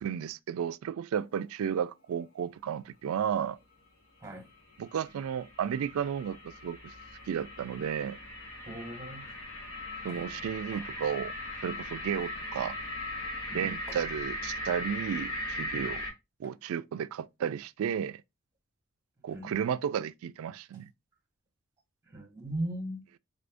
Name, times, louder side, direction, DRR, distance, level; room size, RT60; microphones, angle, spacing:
voice 1, 0.0-3.6 4.8-6.9 7.3-8.2 10.0-11.3 11.6-12.8 13.5-16.0 16.4-18.2 19.2-20.9, right 8 dB, 80° right, 0.3 m, -33 dB
sound 1, 4.5-16.1, left 1 dB, 85° left, 1.3 m, -39 dB
voice 2, 8.7-9.3 13.5-13.8 15.7-15.9 19.3-19.5 22.1-23.2, right 1 dB, 15° right, 1.1 m, -38 dB
4.2 x 2.5 x 3.3 m
head